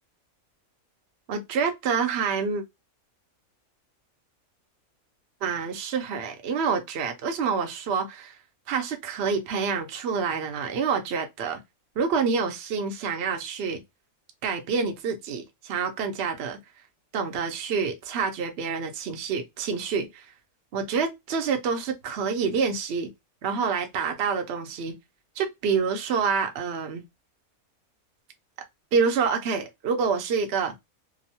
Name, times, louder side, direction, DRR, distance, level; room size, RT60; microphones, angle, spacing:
voice 1, 1.3-2.6 5.4-8.4 8.7-11.6 12.0-13.8 14.4-16.6 17.1-20.3 20.7-23.1 23.4-24.9 25.4-27.0 28.9-30.7, right 5 dB, 60° right, 0.7 m, -27 dB
2.9 x 2.0 x 2.7 m
omnidirectional pair, 1.5 m